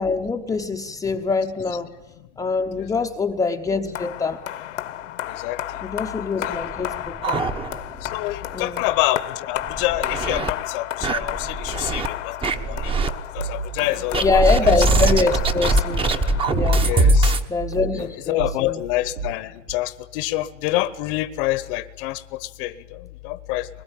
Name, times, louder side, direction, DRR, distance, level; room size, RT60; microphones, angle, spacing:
voice 1, 0.0-1.9 2.4-4.4 5.8-7.4 8.5-8.8 14.2-16.1 16.5-16.9 17.5-18.8, left 4 dB, 10° left, 3 dB, 0.9 m, -24 dB
sound 1, 3.9-17.0, left 12 dB, 80° left, 1.5 m, -33 dB
voice 2, 5.3-5.8 6.4-6.6 8.0-12.4 12.7-13.0 13.3-14.7 16.8-17.3 17.9-23.7, left 16 dB, 45° left, 13 dB, 1.1 m, -27 dB
sound 2, 6.5-8.1 8.4-8.5 8.9-9.0 9.6-10.5 11.0-12.1 12.4-13.1 14.1-17.5, right 2 dB, 15° right, 1.1 m, -21 dB
sound 3, 13.3-17.1 17.6-18.1 18.4-19.3 19.7-19.8, right 6 dB, 75° right, 5.8 m, -33 dB
22.5 x 21.0 x 8.9 m, 1.0 s
hypercardioid pair, 140°, 37 cm